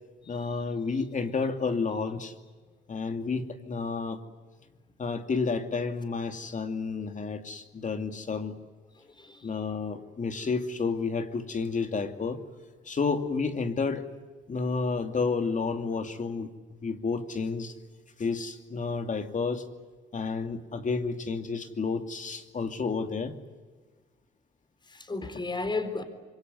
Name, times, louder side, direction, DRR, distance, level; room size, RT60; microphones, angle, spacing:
voice 1, 0.3-2.3 2.9-4.2 5.0-8.5 9.4-12.4 12.9-14.0 14.5-16.5 16.8-17.7 18.2-19.6 20.1-23.3, left 4 dB, 40° left, 2.7 m, -30 dB
voice 2, 9.1-9.5 20.3-20.4 24.9-26.0, left 3 dB, 20° left, 4.1 m, -33 dB
26.0 x 23.5 x 9.5 m
cardioid pair, 90°, 20 cm